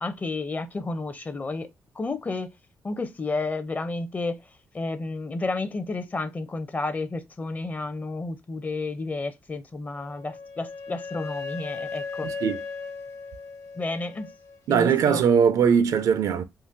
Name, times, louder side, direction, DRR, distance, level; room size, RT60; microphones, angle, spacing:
voice 1, 0.0-1.7 1.9-2.5 2.8-4.4 4.7-12.3 13.8-14.3 14.7-15.2, left 3 dB, 25° left, 0.5 m, -31 dB
Wind instrument woodwind instrument, 9.9-14.6, left 4 dB, 55° left, 0.9 m, -37 dB
voice 2, 12.2-12.6 14.7-16.4, right 7 dB, 70° right, 0.4 m, -20 dB
3.7 x 2.4 x 2.5 m
cardioid pair, 85°, 6 cm